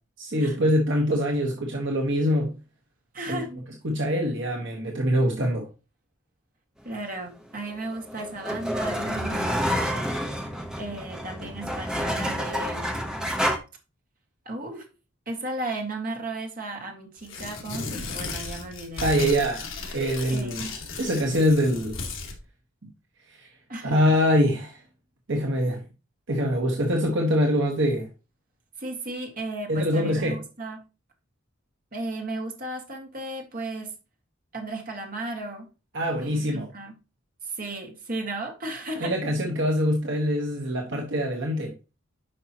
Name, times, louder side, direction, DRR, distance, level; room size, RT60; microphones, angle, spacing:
voice 1, 0.2-2.5 3.3-3.4 3.8-5.7 19.0-20.7 21.0-22.0 23.3-23.5 23.8-24.8 25.3-25.8 26.3-28.1 29.7-30.4 35.9-36.7 39.0-41.7, equal, 55° right, 1.3 m, -24 dB
voice 2, 3.1-3.5 6.8-10.4 10.8-12.9 14.5-14.9 15.3-19.5 20.3-20.7 23.7-24.0 28.8-30.8 31.9-33.9 34.5-35.7 36.1-37.0 37.4-39.1, right 2 dB, 40° right, 1.8 m, -35 dB
sound 1, 7.7-13.6, equal, 5° right, 0.8 m, -29 dB
Tearing, 17.2-22.4, left 3 dB, 60° left, 2.1 m, -35 dB
10.0 x 5.4 x 2.9 m
head